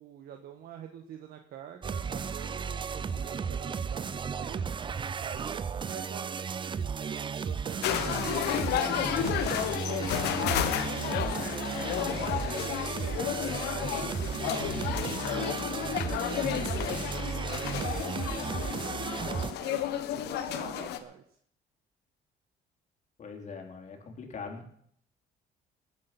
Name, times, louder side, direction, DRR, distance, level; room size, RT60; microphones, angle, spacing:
voice 1, 0.0-4.8 5.2-8.7 9.8-16.9 17.4-21.2, right 9 dB, 65° right, 5 dB, 1.4 m, -46 dB
sound 1, 1.8-19.5, right 6 dB, 30° right, 0.6 m, -34 dB
sound 2, 7.8-21.0, left 10 dB, 80° left, 1.3 m, -32 dB
voice 2, 23.2-24.7, left 5 dB, 45° left, 3 dB, 3.6 m, -42 dB
19.5 x 8.4 x 6.0 m, 0.65 s
cardioid pair, 110°, 17 cm